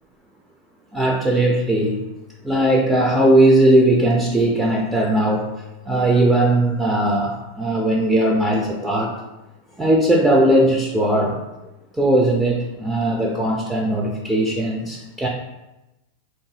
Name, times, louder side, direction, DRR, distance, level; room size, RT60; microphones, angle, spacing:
voice 1, 0.9-2.0 2.4-5.5 5.9-9.1 9.8-11.4 11.9-15.3, right 1 dB, 5° right, -2 dB, 0.3 m, -18 dB
2.9 x 2.3 x 2.7 m, 0.98 s
supercardioid pair, 145°, 0 cm